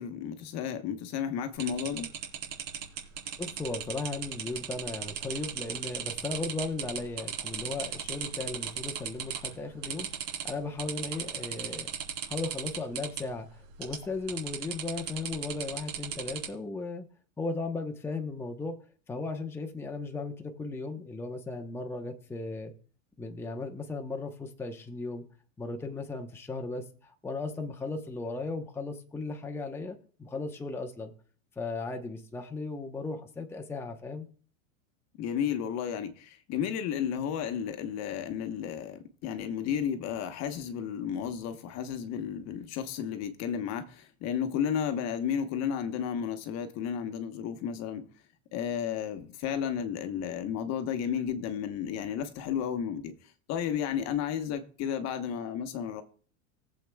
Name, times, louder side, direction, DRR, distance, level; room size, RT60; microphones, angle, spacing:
voice 1, 0.0-2.1 35.2-48.1 48.5-56.0, left 8 dB, 40° left, 1.1 m, -33 dB
sound 1, 1.6-9.5 9.8-10.5 10.8-13.2 13.8-14.0 14.3-16.5, right 9 dB, 70° right, 3.4 m, -36 dB
voice 2, 3.4-11.9 12.2-17.0 17.4-18.8 19.1-22.7 23.2-25.2 25.6-31.1 31.6-34.3, left 3 dB, 5° left, 0.8 m, -36 dB
19.0 x 7.6 x 2.3 m
supercardioid pair, 130°, 39 cm